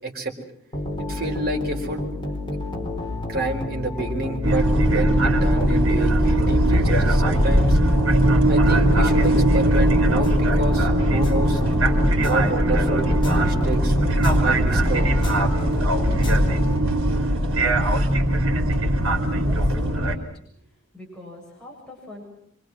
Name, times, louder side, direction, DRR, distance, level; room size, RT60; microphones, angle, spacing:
voice 1, 0.0-0.3 1.0-2.0 3.3-7.8 8.5-11.6 12.2-14.0 14.4-15.1, right 2 dB, 45° right, 1 dB, 4.6 m, -29 dB
sound 1, 0.7-17.2, left 2 dB, 25° left, 4.1 m, -30 dB
sound 2, 4.4-20.1, right 1 dB, 75° right, 3.1 m, -20 dB
voice 2, 19.2-20.5 20.9-22.3, left 1 dB, 5° left, -4 dB, 7.5 m, -42 dB
26.0 x 25.0 x 6.3 m, 0.69 s
head